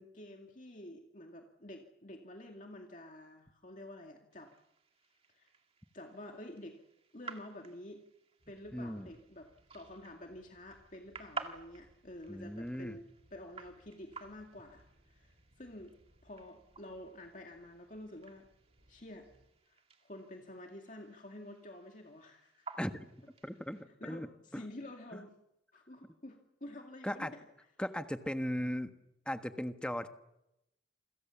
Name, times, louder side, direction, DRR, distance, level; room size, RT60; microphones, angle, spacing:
voice 1, 0.0-4.5 5.3-5.5 5.9-6.8 7.1-8.0 8.5-9.5 9.7-13.0 13.3-16.0 16.2-18.5 18.9-19.3 19.7-22.9 23.7-25.4 25.7-27.9, left 1 dB, 45° left, 2 dB, 2.2 m, -49 dB
sound 1, 4.3-23.8, right 4 dB, 30° right, 2.0 m, -52 dB
sound 2, 8.4-19.5, equal, 65° right, 7.0 m, -68 dB
voice 2, 8.7-9.1 12.3-13.0 22.8-23.1 23.4-24.6 25.1-25.2 27.0-27.3 27.8-28.9 29.2-30.1, equal, 5° left, 8 dB, 1.4 m, -38 dB
28.5 x 26.0 x 7.2 m, 0.85 s
head